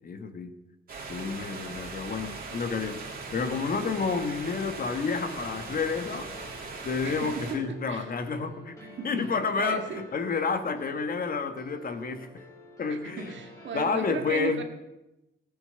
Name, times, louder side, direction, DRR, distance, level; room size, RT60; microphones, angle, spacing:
voice 1, 0.0-0.5 1.1-3.0 3.3-6.3 6.8-8.8 9.0-9.8 10.1-12.4 12.8-13.3 13.7-14.6, left 5 dB, 50° left, 9 dB, 1.3 m, -30 dB
sound 1, 0.9-7.6, right 4 dB, 50° right, 2.9 m, -40 dB
sound 2, 3.3-14.1, equal, 20° left, 3.7 m, -50 dB
voice 2, 7.0-8.1 9.0-9.1 9.6-10.1 12.9-14.6, right 7 dB, 75° right, 5 dB, 1.9 m, -36 dB
15.5 x 8.6 x 6.8 m, 0.97 s
cardioid pair, 130°, 19 cm